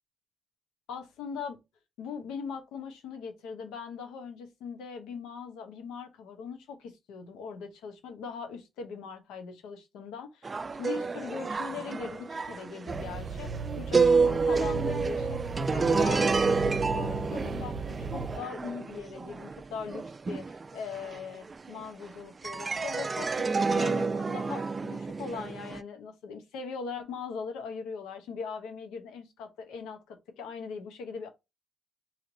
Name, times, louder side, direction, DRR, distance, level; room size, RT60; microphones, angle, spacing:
voice 1, 0.9-1.6 2.0-10.5 10.8-15.4 15.7-31.3, left 6 dB, 90° left, 0.8 m, -40 dB
sound 1, 10.4-22.0 22.4-25.8, right 4 dB, 40° right, 0.3 m, -29 dB
sound 2, 12.9-18.4, right 4 dB, 60° right, 0.7 m, -37 dB
3.1 x 2.8 x 3.8 m
supercardioid pair, 55°, 0 cm